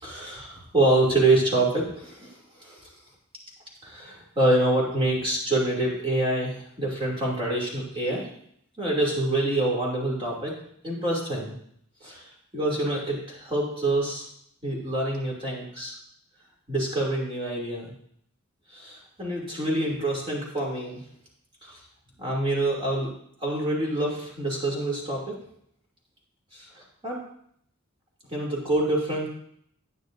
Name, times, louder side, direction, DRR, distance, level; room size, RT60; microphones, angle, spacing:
voice 1, 0.0-2.3 2.6-2.8 3.8-8.3 8.8-10.5 10.8-11.5 12.0-12.2 12.5-14.2 14.6-15.9 16.7-17.9 18.7-21.0 21.6-21.8 22.2-23.1 23.4-25.3 26.5-27.2 28.3-29.3, right 1 dB, 25° right, -4 dB, 2.7 m, -26 dB
10.5 x 9.4 x 2.6 m, 0.68 s
head